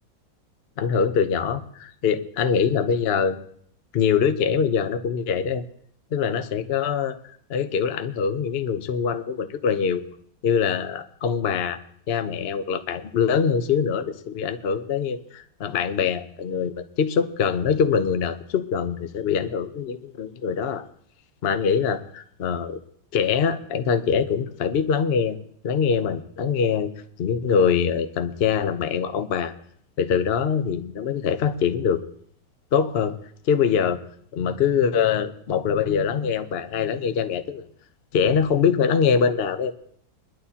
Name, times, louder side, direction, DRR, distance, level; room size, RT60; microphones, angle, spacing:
voice 1, 0.8-3.4 3.9-5.6 6.1-7.2 7.5-10.0 10.4-11.8 12.1-20.9 21.4-22.8 23.1-25.4 25.6-26.9 27.2-29.5 30.0-32.0 32.7-33.2 33.5-34.0 34.3-37.6 38.1-39.7, left 6 dB, 60° left, 9 dB, 0.6 m, -23 dB
22.0 x 11.5 x 2.8 m, 0.63 s
omnidirectional pair, 2.1 m